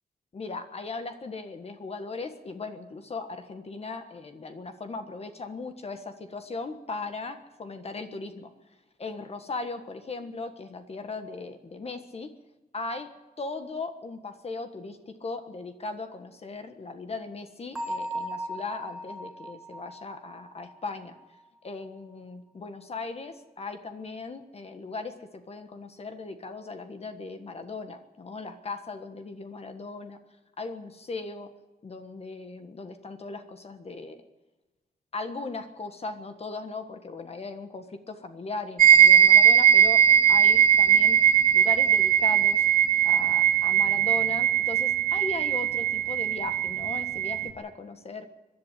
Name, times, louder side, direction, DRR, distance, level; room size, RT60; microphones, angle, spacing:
voice 1, 0.3-8.5 9.0-12.3 12.7-13.1 13.4-21.1 21.6-30.2 30.6-31.5 31.8-34.2 35.1-40.0 40.3-41.2 41.5-42.7 43.0-48.3, left 3 dB, 40° left, 7 dB, 1.4 m, -38 dB
Bell, 17.7-21.4, right 1 dB, ahead, 3.3 m, -37 dB
sound 1, 38.8-47.5, right 9 dB, 55° right, 2.3 m, -20 dB
23.5 x 11.0 x 10.0 m, 1.1 s
wide cardioid pair, 165°, 17 cm